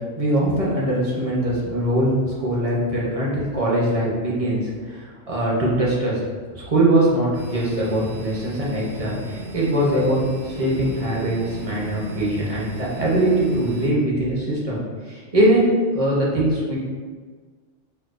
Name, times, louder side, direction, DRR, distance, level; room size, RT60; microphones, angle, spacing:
voice 1, 0.2-6.2 6.5-10.2 10.4-14.8 15.0-16.8, right 1 dB, 35° right, -5 dB, 0.7 m, -22 dB
sound 1, 7.3-13.9, right 1 dB, 65° right, 1.1 m, -36 dB
4.5 x 2.2 x 2.4 m, 1.5 s
omnidirectional pair, 1.3 m